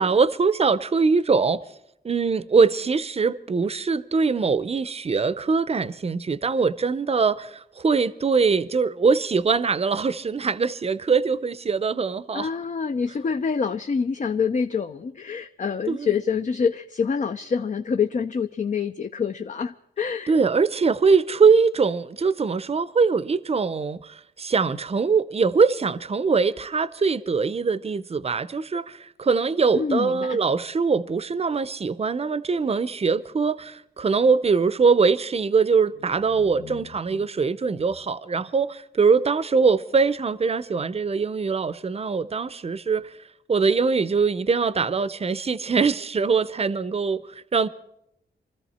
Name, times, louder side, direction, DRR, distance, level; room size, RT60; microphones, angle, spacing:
voice 1, 0.0-1.6 2.0-12.5 15.9-16.1 20.3-43.1 43.5-47.7, right 5 dB, 35° right, 0.6 m, -22 dB
voice 2, 12.3-20.3 29.7-30.4 36.4-37.3, left 6 dB, 45° left, 0.5 m, -26 dB
24.5 x 13.5 x 4.3 m
cardioid pair, 70°, 18 cm